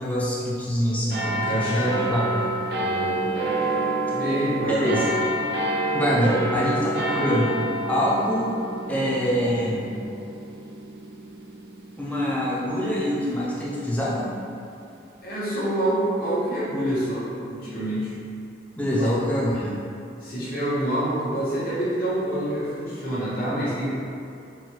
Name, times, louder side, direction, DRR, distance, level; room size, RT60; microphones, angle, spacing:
voice 1, 0.0-2.5 4.7-5.1 5.9-7.5 7.9-8.6 8.9-9.9 12.0-14.3 18.8-19.7, equal, 10° left, -7 dB, 0.5 m, -25 dB
sound 1, 1.1-14.0 14.6-14.7, right 1 dB, 65° right, 0.3 m, -28 dB
voice 2, 1.3-2.0 2.7-3.3 4.1-5.1 15.2-18.1 19.0-19.2 20.2-23.9, right 1 dB, 55° left, -10 dB, 1.3 m, -27 dB
4.5 x 2.3 x 3.1 m, 2.6 s
head